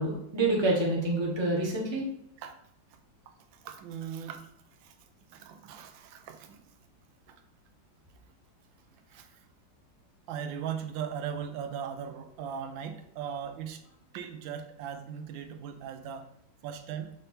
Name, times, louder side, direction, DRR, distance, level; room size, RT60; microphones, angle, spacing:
voice 1, 0.0-2.0, right 2 dB, 15° right, -2 dB, 1.1 m, -27 dB
voice 2, 3.6-4.4 4.8-4.9 5.3-6.6 7.3-7.4 9.1-9.4 10.3-13.8 14.1-16.3 16.6-17.1, right 8 dB, 85° right, 7 dB, 1.3 m, -38 dB
6.7 x 3.3 x 4.3 m, 0.76 s
omnidirectional pair, 2.1 m